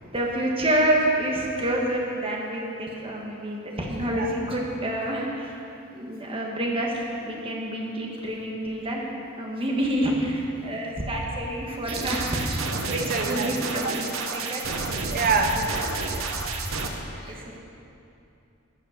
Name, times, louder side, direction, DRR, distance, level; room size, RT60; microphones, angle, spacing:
voice 1, 0.1-5.5 5.9-9.0 9.4-14.6 15.7-15.8 17.3-17.5, right 1 dB, 25° right, -1 dB, 1.5 m, -28 dB
sound 1, 11.9-16.9, right 3 dB, 70° right, 1.0 m, -30 dB
voice 2, 12.9-13.5 13.7-13.9 15.1-15.6 17.2-17.6, right 4 dB, 45° right, 4 dB, 0.9 m, -27 dB
12.5 x 6.5 x 6.6 m, 2.7 s
head